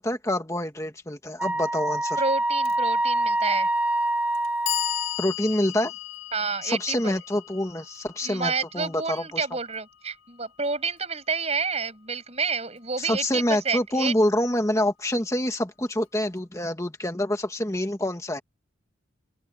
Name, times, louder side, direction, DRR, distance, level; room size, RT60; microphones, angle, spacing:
voice 1, 0.0-2.2 5.2-5.9 6.6-9.4 13.0-18.4, left 1 dB, 15° left, 1.5 m, -26 dB
Wind instrument woodwind instrument, 1.4-5.3, right 1 dB, 5° right, 4.9 m, -25 dB
voice 2, 2.2-3.7 6.3-7.2 8.2-14.1, right 4 dB, 30° right, 7.2 m, -29 dB
Clock, 2.7-2.8 3.7-3.8 4.3-10.4, left 16 dB, 90° left, 3.5 m, -36 dB
open air
head